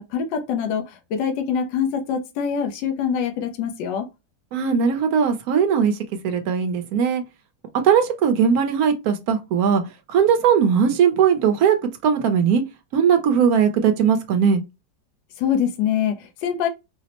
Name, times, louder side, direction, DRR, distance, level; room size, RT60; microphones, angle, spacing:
voice 1, 0.0-4.1 15.4-16.7, left 7 dB, 90° left, 1.3 m, -24 dB
voice 2, 4.5-6.0 6.2-7.2 7.8-9.8 10.1-11.8 12.0-12.6 12.9-14.6, right 7 dB, 65° right, 1.0 m, -19 dB
4.2 x 2.0 x 2.8 m
omnidirectional pair, 1.9 m